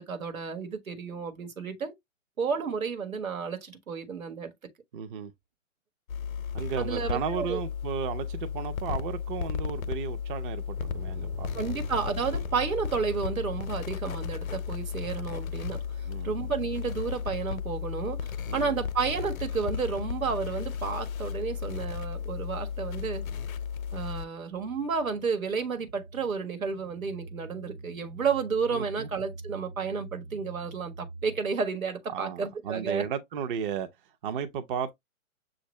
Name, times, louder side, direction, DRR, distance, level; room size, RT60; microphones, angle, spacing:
voice 1, 0.0-1.9 2.4-4.5 6.8-7.6 11.5-15.8 16.2-23.3 23.9-33.0, right 5 dB, 90° right, 1.5 m, -31 dB
voice 2, 4.9-5.3 6.5-11.7 16.0-16.4 18.5-18.8 28.7-29.1 32.1-33.9 34.2-34.9, right 8 dB, 40° right, 0.8 m, -34 dB
sound 1, 6.1-24.3, left 7 dB, 85° left, 0.7 m, -34 dB
sound 2, 10.7-26.0, right 1 dB, 5° right, 0.5 m, -49 dB
sound 3, 24.3-32.0, right 2 dB, 70° right, 0.7 m, -45 dB
6.6 x 2.5 x 3.1 m
hypercardioid pair, 135°, 40 cm